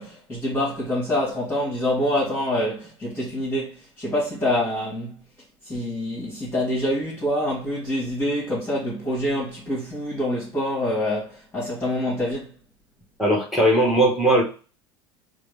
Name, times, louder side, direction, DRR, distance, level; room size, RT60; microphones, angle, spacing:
voice 1, 0.0-5.2 5.6-12.5, left 1 dB, 15° left, 1.7 m, -26 dB
voice 2, 13.2-14.4, right 1 dB, ahead, 1.5 m, -18 dB
4.7 x 2.2 x 3.4 m
figure-of-eight pair, 75°, 14 cm